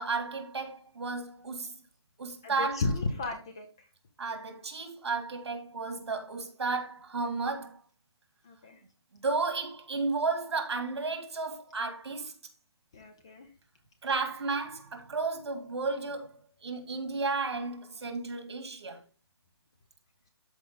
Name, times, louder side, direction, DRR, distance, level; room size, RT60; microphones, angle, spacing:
voice 1, 0.0-1.7 2.2-2.8 4.2-7.8 9.1-12.3 14.0-19.0, right 4 dB, 70° right, 2.4 m, -33 dB
voice 2, 2.4-3.9 8.4-8.8 12.9-13.5, left 3 dB, 10° left, 0.4 m, -34 dB
13.0 x 4.4 x 3.8 m
hypercardioid pair, 175°, 14 cm